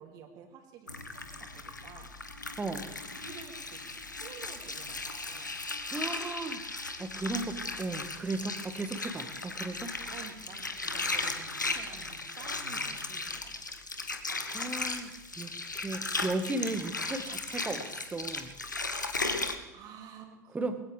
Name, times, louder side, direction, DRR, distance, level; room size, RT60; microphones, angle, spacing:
voice 1, 0.0-2.3 3.1-5.6 10.1-13.6 19.7-20.7, right 7 dB, 40° right, 3 dB, 2.8 m, -51 dB
Water, 0.9-19.6, left 3 dB, 85° left, 1.1 m, -37 dB
voice 2, 5.9-6.6 7.0-9.9 14.5-18.5 20.5-20.7, right 2 dB, 15° right, 8 dB, 1.6 m, -35 dB
21.0 x 16.0 x 3.5 m, 1.0 s
figure-of-eight pair, 80°, 10 cm